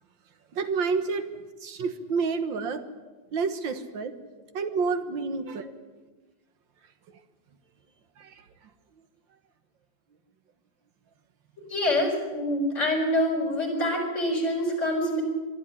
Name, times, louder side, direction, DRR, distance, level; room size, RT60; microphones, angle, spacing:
voice 1, 0.5-1.2 1.6-2.8 3.3-4.1 4.5-5.7 8.2-8.4, right 5 dB, 90° right, 9 dB, 2.1 m, -29 dB
voice 2, 11.7-15.2, left 1 dB, 40° left, 0 dB, 5.9 m, -26 dB
22.5 x 13.0 x 10.0 m, 1.3 s
omnidirectional pair, 2.0 m